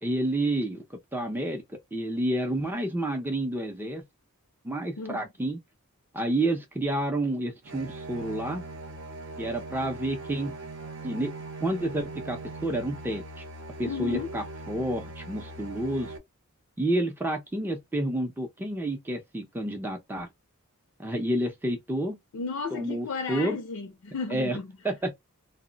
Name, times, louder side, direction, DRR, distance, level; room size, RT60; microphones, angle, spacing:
voice 1, 0.0-4.0 4.6-5.6 6.1-8.6 9.4-10.5 11.0-11.3 11.6-13.4 13.8-16.1 16.8-20.3 21.0-22.2 22.7-23.6 24.3-24.6 24.8-25.2, right 1 dB, 10° right, 0.4 m, -29 dB
voice 2, 5.0-5.3 13.8-14.3 22.3-24.7, left 4 dB, 75° left, 0.5 m, -34 dB
sound 1, 7.6-16.2, right 2 dB, 55° right, 0.6 m, -40 dB
2.1 x 2.0 x 3.7 m
head